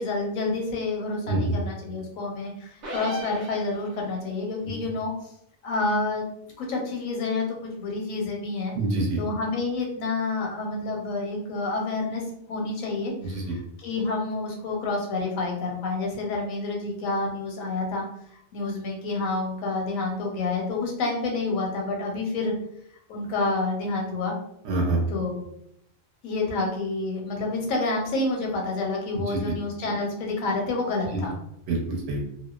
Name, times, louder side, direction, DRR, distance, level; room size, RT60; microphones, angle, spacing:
voice 1, 0.0-5.1 5.6-6.3 6.6-8.7 9.2-12.2 12.5-18.0 18.5-22.5 23.1-24.3 25.1-25.5 26.2-31.4, left 3 dB, 90° left, 0 dB, 1.1 m, -28 dB
sound 1, 2.8-4.2, right 1 dB, 45° right, 0.6 m, -36 dB
voice 2, 8.7-9.2 13.2-13.5 24.6-25.0 29.1-29.4 31.1-31.2 31.7-32.2, right 2 dB, 70° right, 0 dB, 0.9 m, -26 dB
2.7 x 2.0 x 2.3 m, 0.73 s
omnidirectional pair, 1.4 m